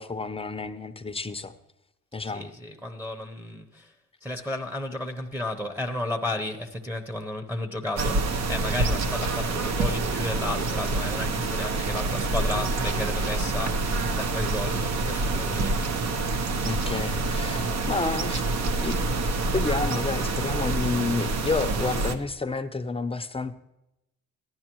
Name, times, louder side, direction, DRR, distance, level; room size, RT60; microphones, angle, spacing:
voice 1, 0.0-1.5 2.1-2.5 16.6-18.4 18.8-19.1 19.5-23.5, left 3 dB, 20° left, 10 dB, 0.6 m, -30 dB
voice 2, 2.3-3.9 4.2-15.8, left 1 dB, 5° right, 3 dB, 0.9 m, -33 dB
sound 1, 8.0-22.1, right 3 dB, 60° right, 1.0 m, -27 dB
14.5 x 11.0 x 3.0 m, 0.89 s
cardioid pair, 90°, 30 cm